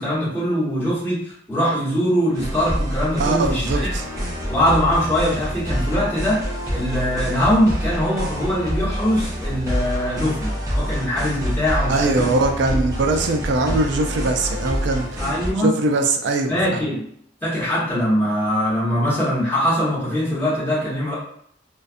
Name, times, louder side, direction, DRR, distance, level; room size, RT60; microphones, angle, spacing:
voice 1, 0.0-3.8 4.5-6.4 6.7-12.3 12.7-12.8 13.6-13.7 15.2-15.7 16.5-17.0 17.4-21.1, equal, 10° left, -11 dB, 1.1 m, -22 dB
sound 1, 2.3-15.5, equal, 20° right, 0.6 m, -26 dB
voice 2, 3.2-4.1 11.9-15.2 15.6-16.8, right 2 dB, 75° right, 3 dB, 0.4 m, -21 dB
2.4 x 2.2 x 2.5 m, 0.68 s
head